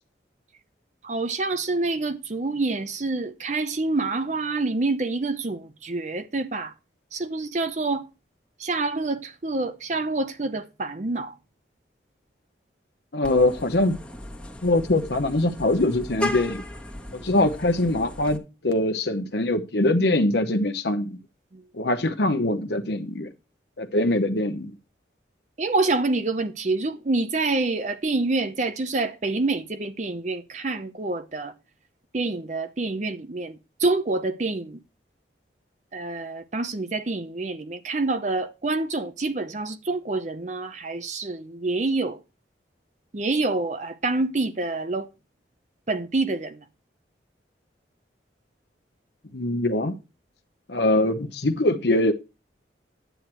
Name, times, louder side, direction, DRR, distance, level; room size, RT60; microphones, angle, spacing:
voice 1, 1.0-6.7 7.1-8.1 8.6-11.4 17.1-17.3 21.5-21.6 25.6-31.5 32.1-34.8 35.9-42.2 43.1-45.1 45.9-46.6, right 3 dB, 40° right, 0.7 m, -27 dB
voice 2, 13.1-14.0 14.6-16.6 17.1-21.2 21.7-23.3 23.8-24.7 49.3-49.9 50.7-52.1, left 1 dB, 65° left, 0.9 m, -23 dB
Vehicle horn car horn honking, 13.2-18.4, left 1 dB, 5° left, 1.2 m, -36 dB
10.0 x 8.0 x 4.5 m
head